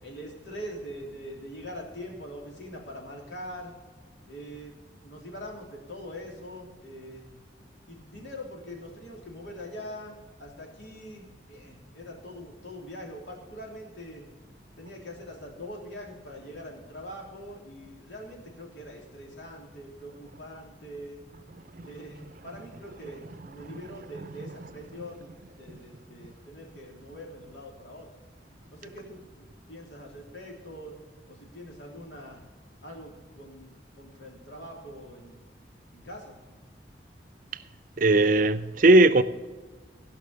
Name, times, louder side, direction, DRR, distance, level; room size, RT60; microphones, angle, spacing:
voice 1, 0.0-3.7 4.3-4.7 5.0-7.3 7.9-14.2 14.8-21.2 21.8-25.3 25.6-28.1 28.7-30.9 31.3-32.4 32.8-35.4 35.9-36.3, equal, 80° left, 3.3 m, -43 dB
voice 2, 38.0-39.2, right 2 dB, 45° right, 0.5 m, -18 dB
15.5 x 6.0 x 6.9 m
head